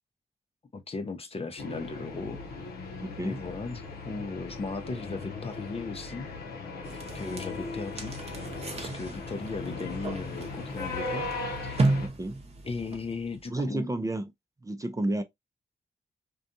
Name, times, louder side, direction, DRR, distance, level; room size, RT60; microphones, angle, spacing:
voice 1, 0.7-2.4 3.2-6.3 6.9-8.2 8.8-11.3 11.6-11.8 12.6-13.9, left 3 dB, 40° left, 0.6 m, -37 dB
sound 1, 1.6-12.1, left 3 dB, 75° left, 0.6 m, -38 dB
voice 2, 3.0-3.4 12.0-12.4 13.5-14.3 14.6-15.2, right 2 dB, 20° right, 0.5 m, -31 dB
sound 2, 6.8-13.4, right 2 dB, 40° right, 0.8 m, -34 dB
2.5 x 2.3 x 2.6 m
supercardioid pair, 45°, 16 cm